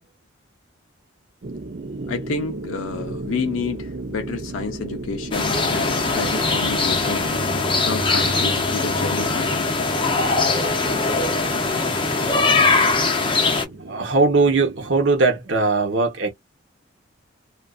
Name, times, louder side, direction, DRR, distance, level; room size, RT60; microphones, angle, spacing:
sound 1, 1.4-15.1, right 3 dB, 45° right, 0.4 m, -35 dB
voice 1, 2.1-7.3 7.8-9.7, left 4 dB, 90° left, 0.5 m, -29 dB
sound 2, 5.3-13.6, left 3 dB, 25° left, 0.5 m, -21 dB
voice 2, 13.2-13.5 13.9-16.3, right 3 dB, 70° right, 0.8 m, -21 dB
2.4 x 2.3 x 2.3 m
head